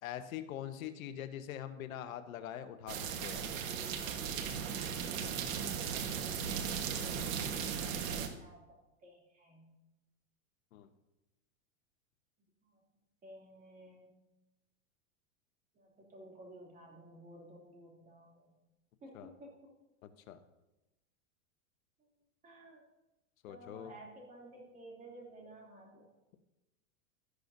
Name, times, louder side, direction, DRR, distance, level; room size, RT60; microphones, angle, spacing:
voice 1, 0.0-3.5 10.7-10.9 19.1-19.3 20.0-20.4 23.4-23.9, left 10 dB, 80° left, 9 dB, 1.0 m, -43 dB
sound 1, 2.9-8.3, right 7 dB, 75° right, 1.5 m, -37 dB
voice 2, 5.9-9.7 12.6-12.7 13.2-14.1 15.7-18.5 19.0-19.5 22.4-22.8 23.5-26.1, right 1 dB, 20° right, -2 dB, 2.8 m, -55 dB
13.0 x 11.5 x 2.7 m, 1.0 s
supercardioid pair, 150°, 40 cm